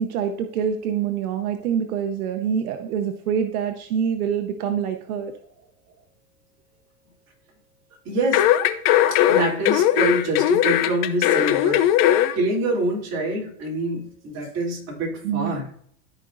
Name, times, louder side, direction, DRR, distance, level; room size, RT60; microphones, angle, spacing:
voice 1, 0.0-5.3 15.2-15.6, right 8 dB, 85° right, 6 dB, 0.9 m, -25 dB
voice 2, 8.0-8.5 9.3-11.8 12.3-15.7, right 2 dB, 35° right, -3 dB, 3.2 m, -25 dB
sound 1, 8.3-12.3 12.7-12.8, left 12 dB, 50° left, 0.7 m, -19 dB
13.5 x 5.1 x 2.6 m, 0.63 s
supercardioid pair, 120°, 43 cm